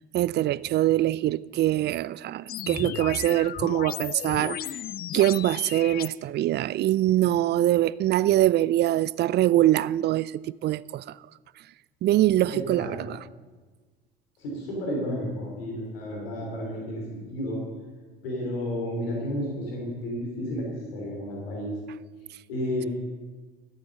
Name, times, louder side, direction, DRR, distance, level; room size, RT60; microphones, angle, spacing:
voice 1, 0.1-4.8 5.1-11.2 12.0-13.2, right 14 dB, 35° right, 0.4 m, -23 dB
sound 1, 2.5-6.1, left 11 dB, 30° left, 0.4 m, -35 dB
voice 2, 12.5-13.1 14.4-17.6 18.2-21.8 22.5-22.9, equal, 75° left, 3.0 m, -32 dB
13.0 x 8.4 x 6.7 m
hypercardioid pair, 60°, 30 cm